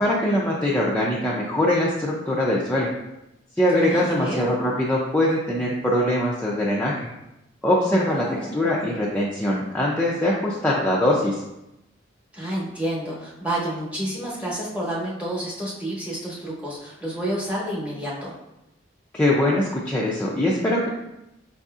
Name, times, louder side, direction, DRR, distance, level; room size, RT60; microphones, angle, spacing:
voice 1, 0.0-2.9 3.6-7.1 7.6-8.3 8.5-11.4 19.1-20.9, left 1 dB, 10° left, -5 dB, 0.4 m, -22 dB
voice 2, 3.8-4.6 7.9-8.5 12.3-18.3, right 1 dB, 5° right, -6 dB, 0.9 m, -30 dB
5.3 x 2.6 x 2.4 m, 0.89 s
head